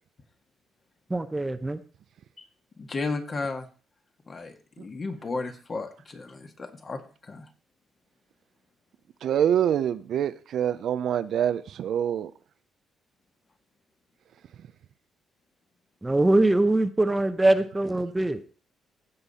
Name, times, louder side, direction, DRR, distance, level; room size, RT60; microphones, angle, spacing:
voice 1, 1.1-1.8 16.0-18.4, right 2 dB, 15° right, 0.8 m, -22 dB
voice 2, 2.8-3.7 4.3-7.5, left 3 dB, 40° left, 1.8 m, -34 dB
voice 3, 9.2-12.3, right 9 dB, 70° right, 0.6 m, -25 dB
15.5 x 5.4 x 4.2 m
cardioid pair, 90°, 0 cm